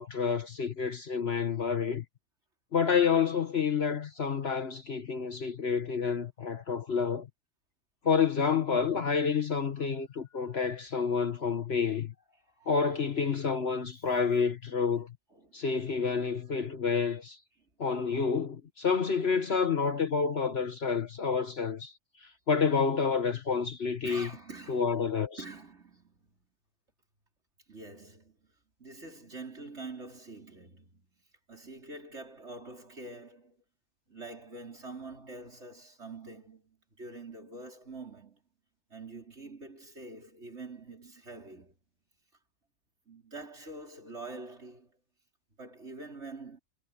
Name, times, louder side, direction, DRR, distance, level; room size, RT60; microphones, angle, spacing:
voice 1, 0.0-2.0 2.7-7.3 8.0-12.1 12.7-15.1 15.5-17.4 17.8-21.9 22.5-24.3 24.7-25.4, left 6 dB, 50° left, 1.3 m, -29 dB
voice 2, 10.2-10.7 12.6-13.0 15.3-15.6 16.3-16.6 21.2-21.3 24.0-26.5 27.7-28.4 28.8-31.1 31.5-33.6 34.1-38.4 38.9-41.7 43.1-44.9 45.6-46.6, right 3 dB, 50° right, 5.2 m, -46 dB
omnidirectional pair, 1.5 m